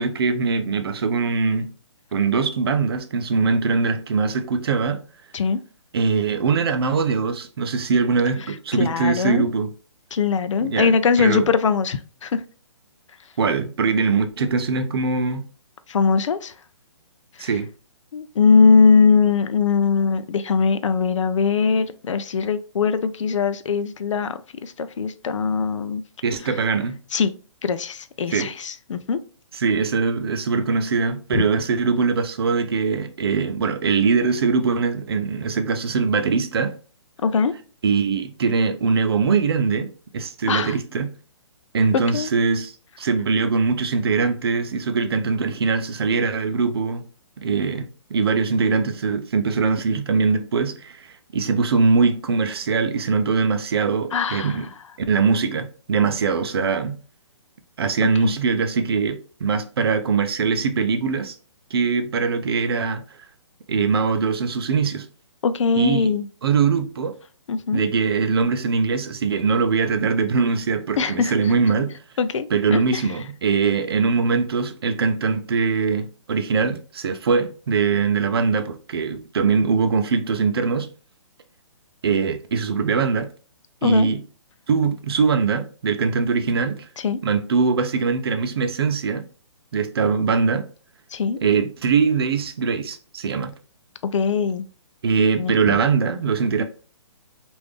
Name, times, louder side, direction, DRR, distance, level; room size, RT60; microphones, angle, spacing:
voice 1, 0.0-1.7 2.1-5.0 5.9-9.7 10.6-11.5 13.4-15.4 17.4-17.7 26.2-27.0 28.3-28.5 29.5-36.7 37.8-41.1 41.7-47.0 47.4-54.7 55.1-57.0 57.8-61.4 61.7-63.0 63.7-65.1 65.8-66.1 66.4-67.1 67.7-71.9 72.5-80.9 82.0-83.3 83.8-84.2 84.7-86.8 87.2-89.3 89.7-90.6 91.4-93.5 95.0-96.6, right 5 dB, 55° right, 0.5 m, -22 dB
voice 2, 8.8-9.5 10.1-12.4 15.9-16.5 17.4-17.5 18.1-26.0 27.1-27.3 27.6-29.2 31.3-31.4 37.2-37.5 40.5-40.7 41.9-42.3 54.1-54.6 58.2-58.3 65.4-66.3 67.5-67.8 71.0-71.3 72.2-73.0 83.8-84.1 87.0-87.2 91.1-91.4 94.0-94.7 95.4-95.5, left 5 dB, 80° left, 0.4 m, -21 dB
3.3 x 2.6 x 3.3 m
hypercardioid pair, 170°, 16 cm